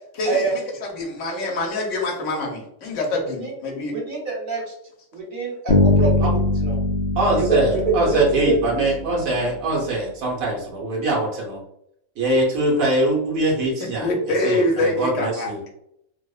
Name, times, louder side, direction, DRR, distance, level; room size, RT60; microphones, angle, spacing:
voice 1, 0.1-3.9 14.0-15.5, left 2 dB, 70° left, 0 dB, 1.0 m, -25 dB
voice 2, 3.2-3.5 3.9-4.7 5.1-6.8 7.3-8.8, right 3 dB, 45° right, -2 dB, 0.8 m, -25 dB
Bass guitar, 5.7-9.5, left 2 dB, 85° left, 0.4 m, -22 dB
voice 3, 7.2-11.6 12.2-14.1 14.4-15.6, right 2 dB, 90° right, -3 dB, 1.2 m, -22 dB
2.8 x 2.0 x 2.3 m, 0.75 s
omnidirectional pair, 1.4 m